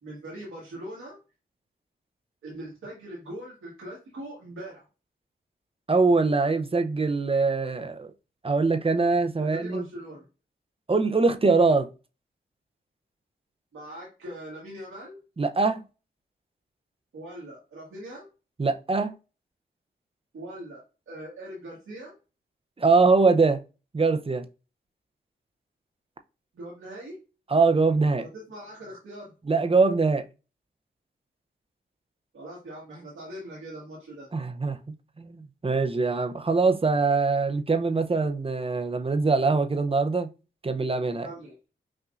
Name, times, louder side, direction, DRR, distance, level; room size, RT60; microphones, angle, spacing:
voice 1, 0.0-1.2 2.4-4.8 9.4-10.2 13.7-15.2 17.1-18.2 20.3-20.8 21.1-22.2 26.5-27.2 28.1-29.3 32.3-34.3 41.0-41.5, right 1 dB, 90° right, 1.5 m, -41 dB
voice 2, 5.9-8.1 8.4-9.9 10.9-11.9 15.4-15.8 18.6-19.1 22.8-23.6 23.9-24.5 27.5-28.2 29.4-30.3 34.3-34.8 35.2-40.3 40.6-41.3, right 4 dB, 30° right, 0.6 m, -23 dB
5.6 x 2.5 x 2.5 m
cardioid pair, 45°, 20 cm